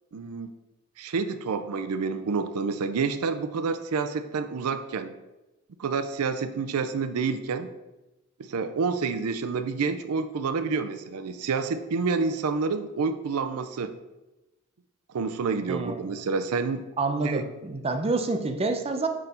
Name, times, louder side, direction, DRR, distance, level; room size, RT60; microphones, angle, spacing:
voice 1, 0.1-0.5 1.0-5.1 5.8-7.7 8.4-14.0 15.1-16.8 17.2-17.4, right 4 dB, 85° right, 10 dB, 0.5 m, -28 dB
voice 2, 15.7-16.0 17.0-19.1, right 3 dB, 25° right, 6 dB, 0.5 m, -27 dB
6.2 x 5.1 x 4.2 m, 1.0 s
head